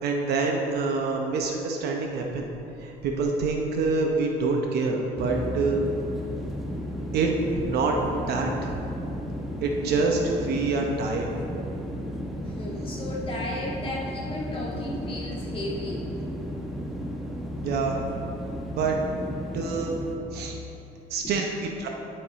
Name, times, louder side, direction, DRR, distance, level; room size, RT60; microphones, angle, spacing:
voice 1, 0.0-2.5 2.8-5.8 7.1-8.0 8.3-8.7 9.6-11.3 17.6-18.0 18.6-19.0 19.5-19.9 20.3-20.6 21.1-21.9, right 3 dB, 70° right, 1 dB, 0.9 m, -26 dB
sound 1, 5.2-20.2, equal, ahead, 1.1 m, -34 dB
voice 2, 12.5-16.1 21.2-21.4, left 1 dB, 30° left, -4 dB, 1.9 m, -34 dB
11.5 x 5.3 x 4.1 m, 2.9 s
cardioid pair, 110°, 17 cm